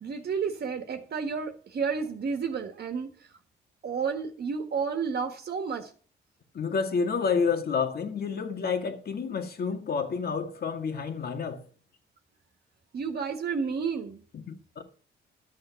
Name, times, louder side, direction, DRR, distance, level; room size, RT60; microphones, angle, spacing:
voice 1, 0.0-3.3 3.8-5.9 12.9-14.2, right 5 dB, 55° right, 1.6 m, -31 dB
voice 2, 6.5-11.6 14.3-14.8, left 5 dB, 50° left, 1.9 m, -29 dB
12.0 x 6.7 x 6.9 m
cardioid pair, 90°, 20 cm